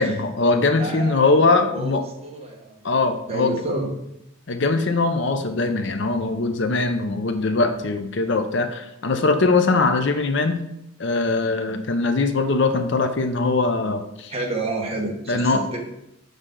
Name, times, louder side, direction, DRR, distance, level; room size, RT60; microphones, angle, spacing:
voice 1, 0.0-2.1 2.8-3.6 4.5-10.6 11.0-14.3 15.3-15.6, left 3 dB, 55° left, 8 dB, 0.6 m, -21 dB
voice 2, 0.8-1.3 1.7-2.7 3.3-3.9 14.3-15.8, right 2 dB, 30° right, -1 dB, 1.4 m, -29 dB
6.5 x 6.4 x 3.8 m, 0.82 s
head